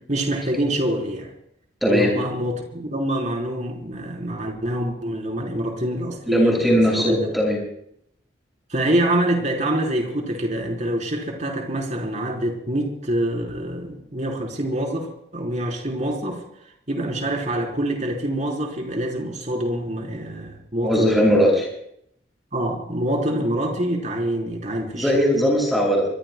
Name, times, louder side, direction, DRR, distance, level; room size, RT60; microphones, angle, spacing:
voice 1, 0.1-1.3 1.9-7.3 8.7-16.4 16.9-21.4 22.5-25.1, right 1 dB, 40° right, 1 dB, 4.2 m, -25 dB
voice 2, 1.8-2.1 6.3-7.6 20.8-21.7 24.9-26.1, equal, ahead, -2 dB, 6.8 m, -19 dB
26.5 x 22.5 x 2.3 m, 0.71 s
head